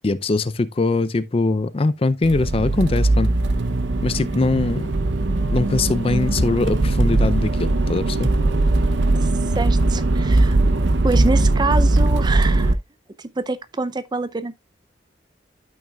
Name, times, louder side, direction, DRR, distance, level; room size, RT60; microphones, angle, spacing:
voice 1, 0.0-3.3 4.0-5.0 5.5-8.3, left 3 dB, 30° left, 0.4 m, -21 dB
Accelerating revving vroom, 2.2-12.7, right 2 dB, 85° right, 0.7 m, -19 dB
voice 2, 9.5-10.6 11.0-12.7 13.2-14.5, right 3 dB, 25° right, 0.5 m, -26 dB
12.5 x 5.7 x 2.3 m
head